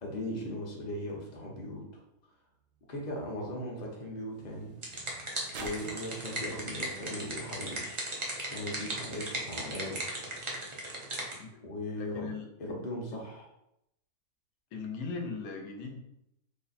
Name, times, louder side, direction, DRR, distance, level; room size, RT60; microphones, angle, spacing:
voice 1, 0.0-1.8 2.9-4.7 5.5-8.0 8.5-10.0 11.5-12.3 12.6-13.5, left 1 dB, 40° left, -2 dB, 0.7 m, -38 dB
sound 1, 2.1-8.5 9.3-9.4, right 4 dB, 70° right, 0.9 m, -52 dB
sound 2, 4.5-11.4, right 1 dB, 40° right, 0.4 m, -37 dB
voice 2, 11.9-12.5 14.7-16.0, left 4 dB, 80° left, 3 dB, 1.1 m, -38 dB
3.4 x 2.1 x 4.0 m, 0.82 s
omnidirectional pair, 1.5 m